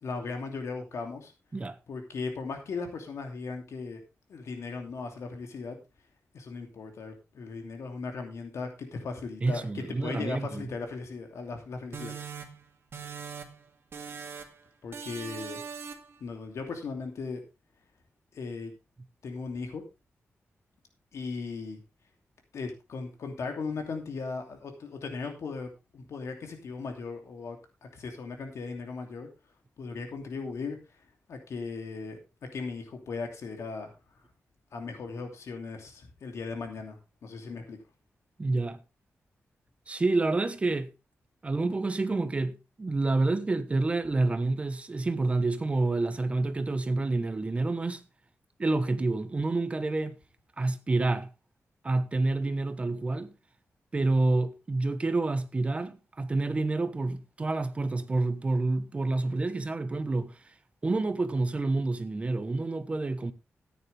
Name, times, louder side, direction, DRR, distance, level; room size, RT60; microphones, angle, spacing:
voice 1, 0.0-1.3 1.9-4.0 4.3-5.8 6.3-12.2 14.8-15.6 16.2-17.4 18.3-18.7 19.2-19.8 21.1-21.8 22.5-29.3 29.8-30.8 31.3-32.2 32.5-33.9 34.7-37.8, left 4 dB, 75° left, 2.8 m, -37 dB
voice 2, 9.4-10.6 38.4-38.8 39.9-40.9 41.4-48.0 48.6-50.2 50.6-51.3 51.8-53.3 53.9-60.3 60.8-63.3, right 2 dB, 25° right, 1.1 m, -28 dB
sound 1, 11.9-13.6 13.9-14.6 14.9-16.2, right 6 dB, 50° right, 2.2 m, -41 dB
14.5 x 9.5 x 3.4 m
wide cardioid pair, 175°, 5 cm